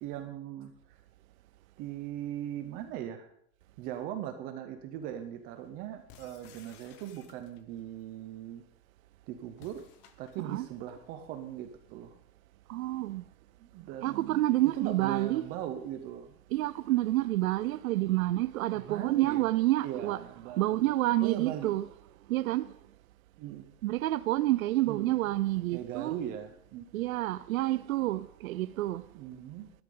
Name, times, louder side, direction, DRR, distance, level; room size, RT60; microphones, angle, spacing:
voice 1, 0.0-1.0 1.8-3.3 3.8-8.6 9.3-9.8 10.2-12.1 13.6-16.3 18.7-19.5 19.8-20.9 21.2-21.8 23.4-23.7 24.9-25.1 25.7-27.1 29.1-29.7, right 11 dB, 20° right, 0.6 m, -39 dB
sound 1, 6.1-7.8 9.5-10.7, left 8 dB, 25° left, 0.9 m, -57 dB
voice 2, 12.7-13.2 14.0-15.4 16.5-20.2 20.6-21.9 22.3-22.7 23.8-26.1 26.9-29.0, right 16 dB, 75° right, 0.6 m, -28 dB
16.0 x 12.0 x 3.9 m
supercardioid pair, 170°, 41 cm